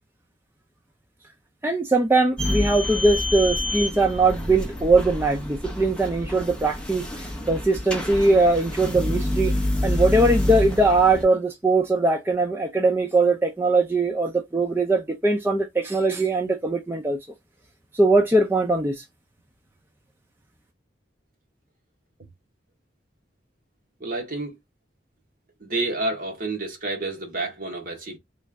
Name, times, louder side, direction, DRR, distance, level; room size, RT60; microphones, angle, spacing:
voice 1, 1.6-7.1 7.5-9.5 9.8-17.2 17.9-19.0, right 2 dB, 15° right, 0.5 m, -21 dB
sound 1, 2.4-11.2, left 1 dB, 5° left, 0.8 m, -28 dB
voice 2, 24.0-24.6 25.6-28.2, right 2 dB, 50° right, 1.2 m, -29 dB
3.2 x 2.5 x 3.4 m
head